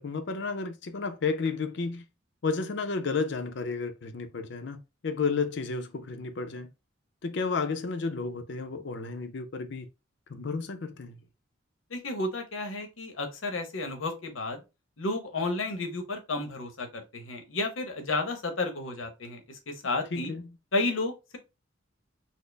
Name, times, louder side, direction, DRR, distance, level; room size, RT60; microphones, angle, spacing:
voice 1, 0.0-2.1 2.4-6.7 7.2-9.9 10.3-11.2 20.1-20.6, left 4 dB, 60° left, 0.5 m, -32 dB
voice 2, 11.9-14.6 15.0-20.3 20.7-21.4, left 2 dB, 80° left, 0.9 m, -32 dB
4.2 x 2.1 x 3.2 m
head